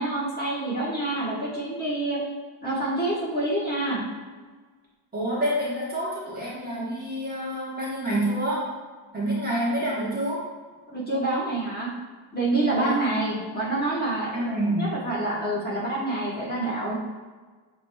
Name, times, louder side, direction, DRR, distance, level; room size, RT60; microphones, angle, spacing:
voice 1, 0.0-2.2 2.6-4.0 9.7-9.8 10.9-11.9 12.3-14.5 14.8-16.9, right 2 dB, 20° left, -7 dB, 1.1 m, -27 dB
voice 2, 5.1-8.7 9.1-10.4 12.7-13.0 14.3-14.9, right 1 dB, 20° right, -7 dB, 1.0 m, -27 dB
6.7 x 2.9 x 2.2 m, 1.4 s
cardioid pair, 140°, 48 cm